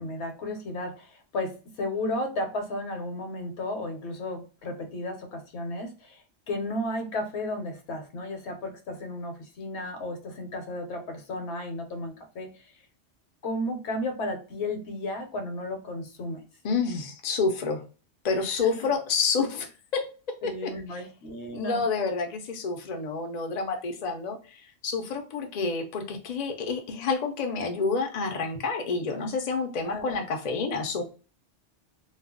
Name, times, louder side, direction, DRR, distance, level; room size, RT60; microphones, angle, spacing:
voice 1, 0.0-12.5 13.4-16.4 18.6-18.7 20.4-21.8 29.8-30.2, left 1 dB, 65° left, 5 dB, 0.9 m, -34 dB
voice 2, 16.6-17.8 18.2-20.1 20.4-21.0 21.5-31.0, left 4 dB, 50° left, 4 dB, 0.5 m, -29 dB
2.3 x 2.0 x 3.6 m, 0.36 s
omnidirectional pair, 1.2 m